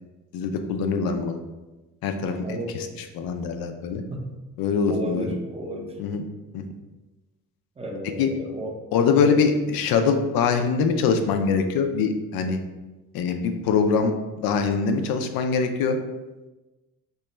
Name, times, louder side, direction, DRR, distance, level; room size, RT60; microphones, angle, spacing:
voice 1, 0.3-1.4 2.0-4.0 4.6-5.3 6.0-6.2 6.5-6.6 8.2-8.3 8.9-12.6 13.1-16.0, left 5 dB, 90° left, 6 dB, 0.5 m, -23 dB
voice 2, 2.4-2.7 4.1-4.2 4.9-5.9 7.8-8.7 9.2-9.4, equal, 20° right, 1 dB, 0.5 m, -32 dB
2.9 x 2.3 x 4.2 m, 1.1 s
cardioid pair, 135°, 35 cm